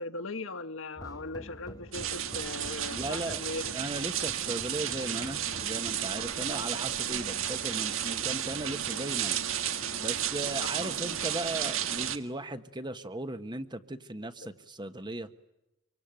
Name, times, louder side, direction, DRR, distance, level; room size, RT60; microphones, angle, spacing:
voice 1, 0.0-3.7 10.8-11.0 14.4-14.5, left 3 dB, 70° left, 1.5 m, -39 dB
sound 1, 1.0-11.3, equal, 20° left, 1.7 m, -50 dB
sound 2, 1.9-12.2, right 10 dB, 75° right, 1.6 m, -33 dB
voice 2, 2.9-3.4 3.7-9.4 10.0-15.3, right 1 dB, 20° right, 1.3 m, -37 dB
26.0 x 24.5 x 9.1 m
head